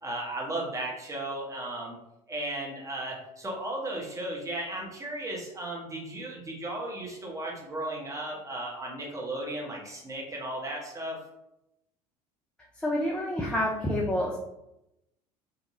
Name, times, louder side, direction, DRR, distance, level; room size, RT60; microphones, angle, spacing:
voice 1, 0.0-1.9 2.3-11.2, right 1 dB, 15° right, -3 dB, 0.9 m, -35 dB
voice 2, 12.8-14.4, left 1 dB, 5° left, -2 dB, 0.3 m, -28 dB
2.7 x 2.5 x 2.7 m, 0.87 s
figure-of-eight pair, 65°, 20 cm